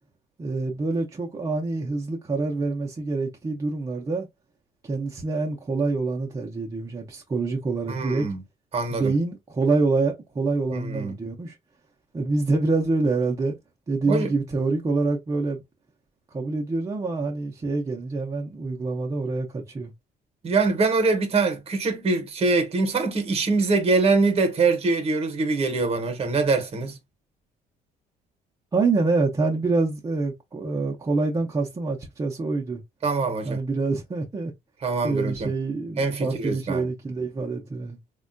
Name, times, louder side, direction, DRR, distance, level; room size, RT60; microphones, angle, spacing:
voice 1, 0.4-4.3 4.8-8.3 8.9-11.6 12.1-13.5 13.9-15.6 16.3-19.9 28.7-32.8 33.4-34.5 35.0-38.0, right 3 dB, 20° right, 0.5 m, -26 dB
voice 2, 7.9-8.4 8.7-9.1 10.7-11.2 14.0-14.3 20.4-27.0 33.0-33.6 34.8-35.5 36.0-36.9, right 3 dB, 35° right, 0.9 m, -24 dB
3.4 x 2.2 x 2.4 m
cardioid pair, 110°, 17 cm